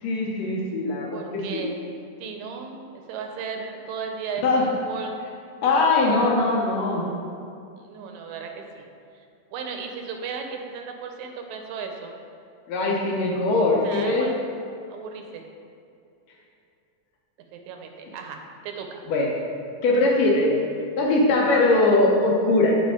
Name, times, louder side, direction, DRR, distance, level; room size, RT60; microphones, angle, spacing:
voice 1, 0.0-1.6 4.4-4.7 5.6-7.1 12.7-14.3 19.1-19.3 19.8-20.6 21.0-22.8, left 2 dB, 70° left, -2 dB, 1.8 m, -21 dB
voice 2, 1.1-1.8 2.2-5.2 7.8-8.9 9.5-12.1 13.8-14.4 14.9-15.4 17.5-18.4 18.6-19.0, right 5 dB, 80° right, 4 dB, 2.0 m, -35 dB
8.2 x 4.7 x 3.6 m, 2.5 s
omnidirectional pair, 3.4 m